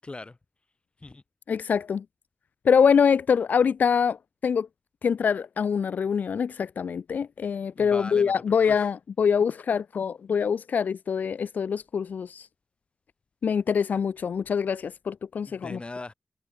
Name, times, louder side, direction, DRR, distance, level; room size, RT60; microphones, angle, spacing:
voice 1, 0.0-0.4 1.0-1.2 7.8-8.9 15.5-16.1, left 2 dB, 40° left, 7.7 m, -40 dB
voice 2, 1.5-2.0 2.6-4.2 4.4-4.7 5.0-12.5 13.4-15.8, left 6 dB, 90° left, 0.6 m, -24 dB
cardioid pair, 55°, 3 cm